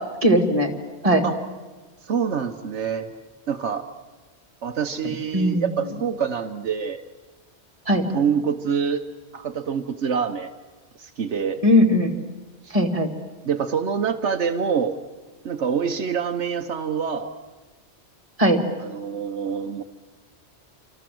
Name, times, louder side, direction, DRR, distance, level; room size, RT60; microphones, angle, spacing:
voice 1, 0.2-0.7 1.0-1.2 5.3-5.7 7.9-8.0 11.6-12.1 12.7-13.1 18.4-18.6, equal, 30° right, 3 dB, 2.6 m, -18 dB
voice 2, 2.1-3.1 3.5-3.8 4.6-7.0 8.1-9.0 9.3-10.5 11.0-11.6 12.6-12.7 13.4-15.0 15.4-17.3 18.8-19.8, right 7 dB, 80° right, 6 dB, 1.3 m, -26 dB
28.0 x 26.0 x 7.8 m, 1.3 s
omnidirectional pair, 1.2 m